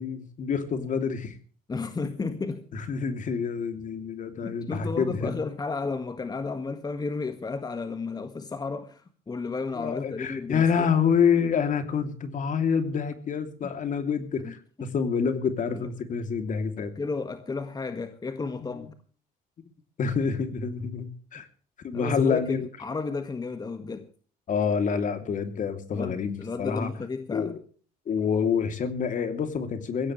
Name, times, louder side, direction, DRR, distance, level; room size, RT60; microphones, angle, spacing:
voice 1, 0.0-1.3 2.7-5.4 9.8-16.9 18.6-18.9 20.0-21.5 21.8-22.7 24.5-26.9 27.3-27.6 28.1-30.1, left 6 dB, 50° left, 3.0 m, -27 dB
voice 2, 1.7-2.6 4.4-10.9 13.6-13.7 14.4-14.5 15.7-15.9 16.8-18.9 21.9-24.1 25.9-27.6, left 4 dB, 25° left, 1.7 m, -33 dB
22.5 x 16.0 x 3.2 m
cardioid pair, 110°, 17 cm